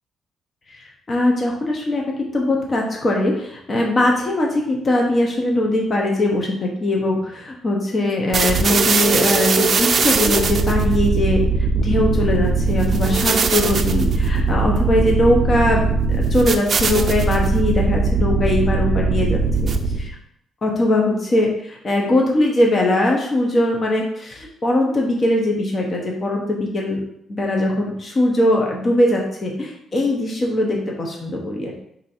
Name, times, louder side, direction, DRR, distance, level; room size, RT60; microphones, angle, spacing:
voice 1, 1.1-2.0 2.3-11.4 11.7-15.8 16.3-20.2 20.6-21.5 21.8-27.0 27.3-31.9, left 1 dB, 40° left, 0 dB, 0.9 m, -20 dB
sound 1, 8.3-20.1, right 4 dB, 45° right, 0.5 m, -19 dB
4.4 x 2.7 x 4.3 m, 0.76 s
cardioid pair, 90°, 0 cm